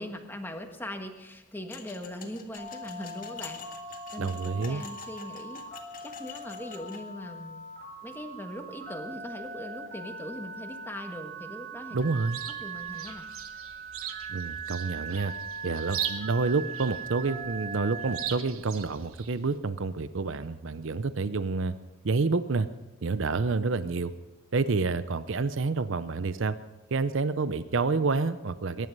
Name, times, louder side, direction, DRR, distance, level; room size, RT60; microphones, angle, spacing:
voice 1, 0.0-3.6 4.1-5.6 6.0-7.6 8.0-12.0 12.6-13.3, equal, 10° left, 4 dB, 1.5 m, -40 dB
sound 1, 1.7-7.0, left 7 dB, 40° left, 1.8 m, -47 dB
Telephone, 2.6-18.3, right 4 dB, 40° right, 5.1 m, -40 dB
voice 2, 4.2-4.8 11.9-12.4 14.3-15.3 15.6-21.8 22.0-22.7 23.0-24.1 24.5-26.6 26.9-28.9, right 4 dB, 60° right, 13 dB, 0.6 m, -28 dB
Chirp tweet, 12.0-19.6, right 10 dB, 85° right, 1.3 m, -40 dB
22.5 x 11.0 x 5.4 m, 1.1 s
head